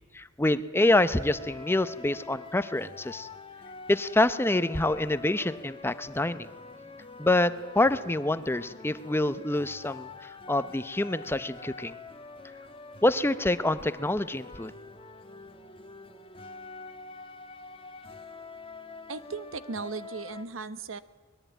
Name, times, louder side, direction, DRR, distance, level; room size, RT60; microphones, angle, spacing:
voice 1, 0.1-3.3 3.9-6.5 7.2-10.1 10.5-12.0 13.0-14.7, left 2 dB, 10° left, 13 dB, 0.7 m, -26 dB
sound 1, 1.1-20.5, left 3 dB, 25° left, 1.3 m, -46 dB
voice 2, 19.1-21.0, right 4 dB, 70° right, 14 dB, 0.9 m, -37 dB
24.0 x 20.5 x 9.1 m, 1.4 s
head